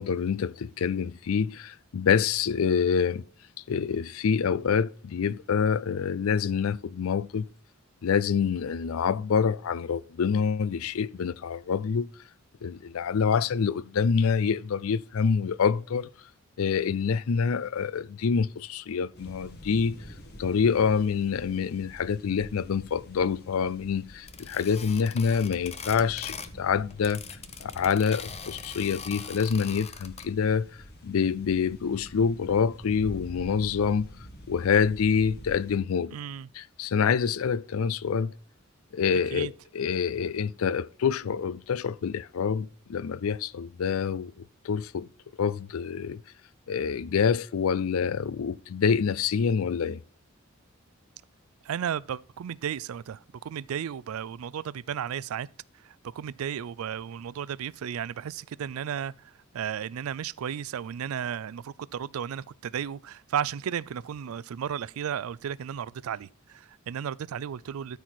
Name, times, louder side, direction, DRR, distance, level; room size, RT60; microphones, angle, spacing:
voice 1, 0.0-3.2 3.7-7.5 8.0-12.1 12.6-16.1 16.6-20.0 20.4-27.2 27.6-30.7 31.0-34.1 34.5-36.2 36.5-38.3 38.9-45.1 45.4-46.2 46.7-50.0, left 6 dB, 85° left, 0.4 m, -26 dB
sound 1, 19.1-35.8, equal, 50° left, 1.9 m, -47 dB
sound 2, 24.3-26.6 26.9-30.3, left 6 dB, 30° left, 0.7 m, -41 dB
voice 2, 36.1-36.5 39.1-39.5 51.6-55.5 55.8-68.0, right 8 dB, 85° right, 0.4 m, -34 dB
13.0 x 4.6 x 4.3 m
head